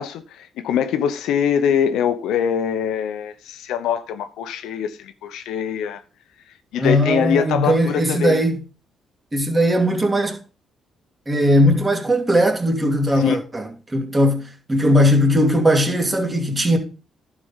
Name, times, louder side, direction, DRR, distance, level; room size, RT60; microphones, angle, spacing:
voice 1, 0.0-6.0 6.7-8.4 13.2-13.4, left 8 dB, 85° left, 0.9 m, -23 dB
voice 2, 6.8-8.6 9.3-10.4 11.3-16.8, equal, 20° right, 2.6 m, -18 dB
11.0 x 5.1 x 5.6 m
cardioid pair, 90°, 0 cm